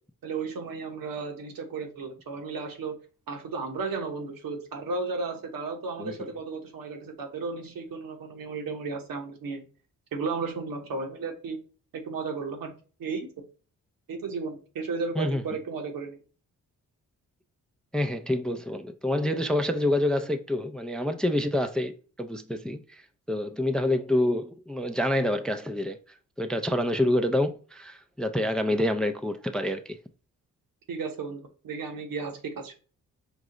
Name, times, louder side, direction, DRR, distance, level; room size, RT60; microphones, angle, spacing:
voice 1, 0.2-2.9 3.3-9.6 10.1-11.6 12.1-12.7 13.0-13.4 14.1-16.2 30.9-32.7, right 4 dB, 75° right, 1.0 m, -34 dB
voice 2, 17.9-21.9 22.2-23.0 23.3-26.0 26.4-30.0, left 1 dB, ahead, 0.4 m, -27 dB
4.8 x 2.0 x 3.7 m
supercardioid pair, 55°, 35 cm